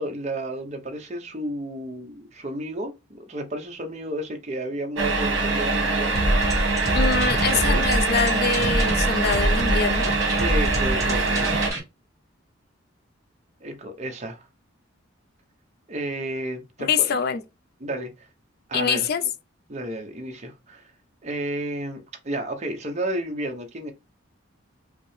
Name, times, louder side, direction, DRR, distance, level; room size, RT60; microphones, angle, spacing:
voice 1, 0.0-6.1 7.6-7.8 10.4-11.6 13.6-14.5 15.9-17.1 17.8-18.3 18.7-19.1 19.7-20.8 21.2-23.9, right 1 dB, 35° right, 0.8 m, -32 dB
sound 1, 5.0-11.7, right 3 dB, 70° right, 1.4 m, -23 dB
sound 2, 6.2-11.8, right 1 dB, 15° right, 1.6 m, -26 dB
voice 2, 6.9-10.1 16.8-17.4 18.7-19.2, left 6 dB, 50° left, 0.4 m, -24 dB
5.1 x 2.1 x 3.2 m
head